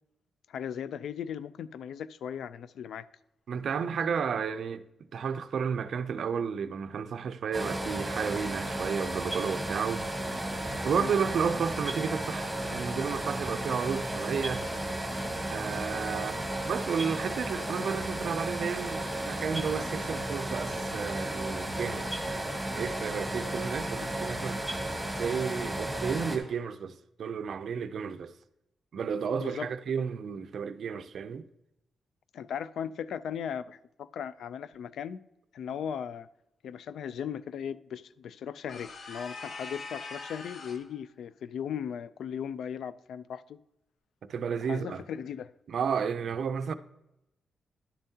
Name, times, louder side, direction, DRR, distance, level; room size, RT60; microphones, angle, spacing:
voice 1, 0.5-3.1 11.0-11.1 24.0-24.1 29.4-29.7 32.3-35.2 35.5-36.3 36.6-43.6 44.6-45.5, left 8 dB, 80° left, 0.3 m, -37 dB
voice 2, 3.5-4.8 5.1-10.1 10.8-14.7 15.5-22.1 22.7-24.6 25.2-28.3 28.9-31.4 44.2-45.0 45.7-46.7, right 6 dB, 55° right, 0.4 m, -32 dB
sound 1, 7.5-26.4, right 1 dB, 5° right, 1.2 m, -34 dB
sound 2, 38.7-40.9, left 3 dB, 45° left, 0.8 m, -42 dB
11.0 x 7.1 x 2.8 m
wide cardioid pair, 175°, 0 cm